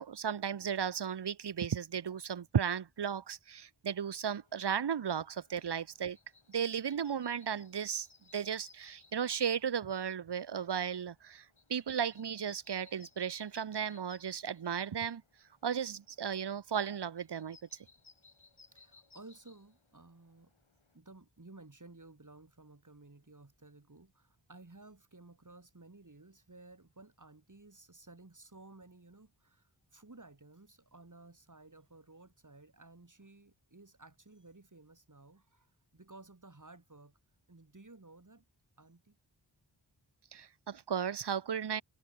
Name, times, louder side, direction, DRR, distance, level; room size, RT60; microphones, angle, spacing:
voice 1, 0.0-6.2 6.5-8.1 8.3-15.2 15.6-17.6 40.3-41.8, right 8 dB, 60° right, 0.7 m, -35 dB
sound 1, 4.4-21.0, left 4 dB, 90° left, 6.0 m, -64 dB
voice 2, 18.7-20.5 20.9-37.2 37.5-38.4 38.8-39.2, right 2 dB, 40° right, 3.3 m, -56 dB
wide cardioid pair, 40°, 46 cm